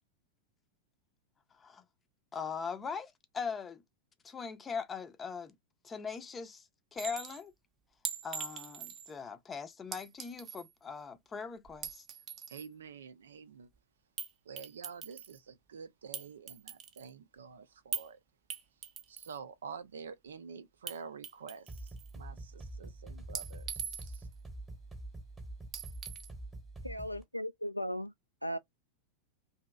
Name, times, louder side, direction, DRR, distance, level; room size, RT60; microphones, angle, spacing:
voice 1, 1.5-1.8 2.3-3.8 4.2-5.6 5.8-7.5 8.2-12.1, left 6 dB, 20° left, 0.6 m, -41 dB
Chink clink, 7.0-7.4 8.1-9.1 9.9-10.7 11.7-12.7 14.2-14.3 14.6-15.4 16.1-17.1 17.9-18.1 18.5-19.4 20.9-21.0 21.2-22.1 23.4-24.3 25.7-26.3, right 7 dB, 30° right, 0.7 m, -41 dB
voice 2, 12.5-13.7 14.5-18.2 19.1-21.8 22.1-24.2, right 6 dB, 65° right, 0.5 m, -48 dB
sound 1, 21.7-27.2, right 2 dB, 15° right, 1.0 m, -46 dB
voice 3, 26.8-28.1 28.4-28.6, equal, 90° left, 0.3 m, -36 dB
2.9 x 2.7 x 2.3 m
figure-of-eight pair, 90°, 0 cm